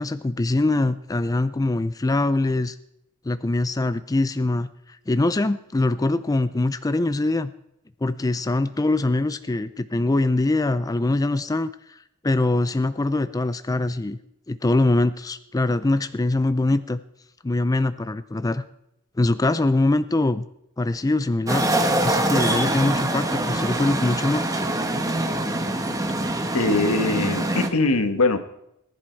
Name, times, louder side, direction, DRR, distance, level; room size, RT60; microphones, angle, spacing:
voice 1, 0.0-2.8 3.2-7.5 8.0-12.0 12.2-14.2 14.5-17.0 17.4-18.6 19.2-20.5 20.8-21.7 22.0-24.5, left 2 dB, 15° left, 12 dB, 0.4 m, -23 dB
sound 1, 21.5-27.7, right 1 dB, 15° right, 1.3 m, -24 dB
voice 2, 26.5-28.4, left 3 dB, 85° left, 8 dB, 1.5 m, -21 dB
19.5 x 11.0 x 4.6 m, 0.80 s
head